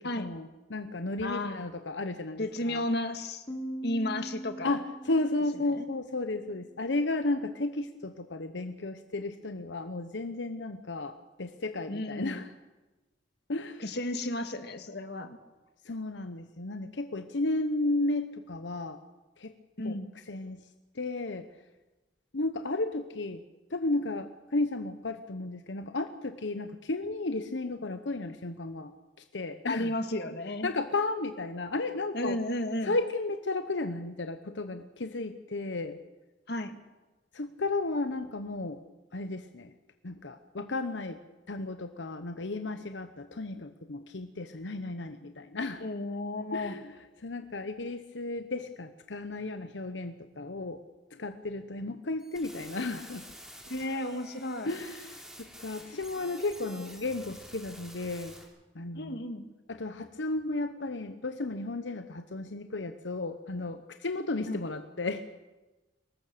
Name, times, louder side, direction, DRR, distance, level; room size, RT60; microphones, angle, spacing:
voice 1, 0.0-2.8 4.6-12.5 13.5-13.8 15.8-19.0 19.4-19.5 19.8-20.0 20.3-20.6 20.9-21.5 22.3-23.4 23.7-28.9 29.3-29.9 30.6-32.4 32.8-36.0 37.3-38.8 39.1-39.7 40.0-41.2 41.5-45.8 46.5-46.9 47.2-50.8 51.1-53.3 54.6-58.3 58.7-59.3 59.7-65.2, left 2 dB, 90° left, 8 dB, 1.1 m, -33 dB
voice 2, 1.2-1.7 2.4-3.4 3.8-4.7 5.7-5.9 11.9-12.4 13.8-15.4 19.8-20.1 29.7-30.7 32.1-33.0 36.5-36.8 45.8-46.8 53.7-54.7 59.0-59.4 64.5-64.6, left 1 dB, 65° left, 8 dB, 1.8 m, -33 dB
Piano, 3.5-6.9, right 1 dB, 25° left, 3.5 m, -42 dB
sound 1, 52.2-58.4, equal, 5° right, 4.0 m, -49 dB
23.5 x 20.0 x 6.8 m, 1.1 s
head